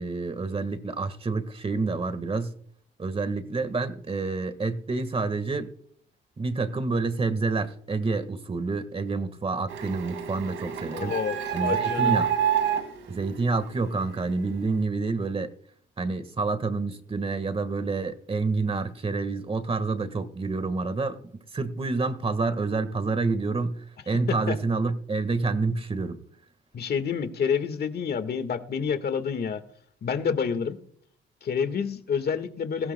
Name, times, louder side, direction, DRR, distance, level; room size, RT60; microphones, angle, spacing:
voice 1, 0.0-2.5 3.0-5.7 6.4-11.1 11.5-12.3 13.1-15.5 16.0-21.2 21.5-26.2, right 3 dB, 30° right, 1.6 m, -28 dB
Printer, 9.7-14.3, right 8 dB, 85° right, 2.2 m, -28 dB
voice 2, 10.9-12.2 24.5-24.6 26.7-29.6 30.0-30.8 31.4-32.9, left 6 dB, 55° left, 1.6 m, -28 dB
19.5 x 16.0 x 2.2 m
cardioid pair, 90°, 20 cm